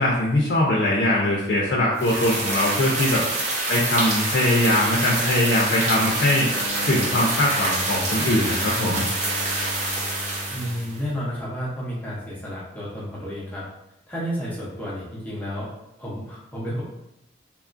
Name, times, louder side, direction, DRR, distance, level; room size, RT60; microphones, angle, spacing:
voice 1, 0.0-3.2 3.7-6.5 6.9-9.0, left 1 dB, 60° left, -4 dB, 0.4 m, -21 dB
sound 1, 2.0-11.0, right 2 dB, 40° right, 0.6 m, -26 dB
sound 2, 5.9-11.3, left 2 dB, 45° left, 0.9 m, -37 dB
voice 2, 10.5-13.7 14.1-15.7 16.0-16.8, equal, 10° left, -7 dB, 0.6 m, -31 dB
3.0 x 2.3 x 2.4 m, 0.86 s
head